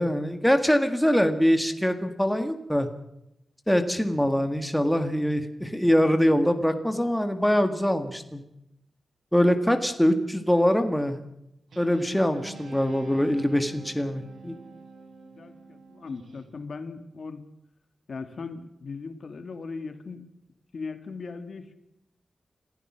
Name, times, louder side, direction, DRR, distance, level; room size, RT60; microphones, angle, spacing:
voice 1, 0.0-2.9 3.7-8.4 9.3-11.2 11.8-14.5, equal, 5° left, 7 dB, 1.7 m, -23 dB
Guitar, 11.7-16.5, right 4 dB, 90° right, 5.0 m, -47 dB
voice 2, 15.3-17.4 18.1-20.3 20.7-21.8, left 4 dB, 60° left, 9 dB, 2.4 m, -38 dB
28.0 x 15.0 x 6.2 m, 0.84 s
wide cardioid pair, 155°, 0 cm